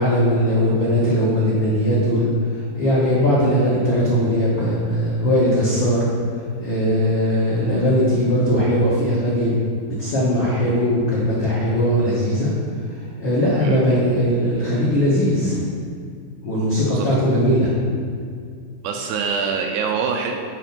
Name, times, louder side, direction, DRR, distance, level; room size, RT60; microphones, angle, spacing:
voice 1, 0.0-6.1 6.6-9.6 10.0-12.5 13.2-15.7 16.4-17.8, equal, 75° left, -8 dB, 1.1 m, -19 dB
voice 2, 18.8-20.4, right 5 dB, 80° right, 2 dB, 2.3 m, -24 dB
10.0 x 3.6 x 5.9 m, 2.2 s
omnidirectional pair, 4.7 m